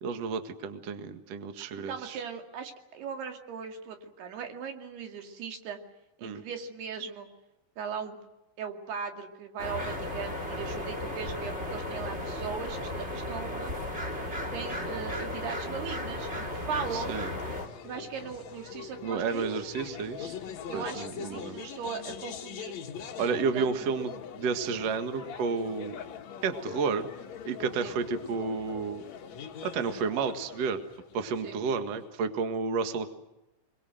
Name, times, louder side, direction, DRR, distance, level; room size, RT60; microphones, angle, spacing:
voice 1, 0.0-2.2 6.2-6.4 16.9-17.3 19.0-20.3 20.7-21.6 23.2-25.9 26.4-27.1 27.4-29.0 29.6-30.8 31.1-33.1, right 5 dB, 90° right, 8 dB, 1.4 m, -31 dB
voice 2, 1.7-5.8 6.2-7.3 7.8-8.2 8.6-13.7 14.5-17.1 17.8-19.6 20.7-22.8 23.5-23.9 27.8-28.0 31.4-31.6, right 6 dB, 60° right, 5 dB, 3.9 m, -38 dB
sound 1, 9.6-17.7, left 1 dB, 25° right, 1.5 m, -35 dB
sound 2, 16.8-32.2, left 8 dB, 85° left, 1.5 m, -43 dB
27.0 x 23.0 x 7.8 m, 0.97 s
omnidirectional pair, 5.8 m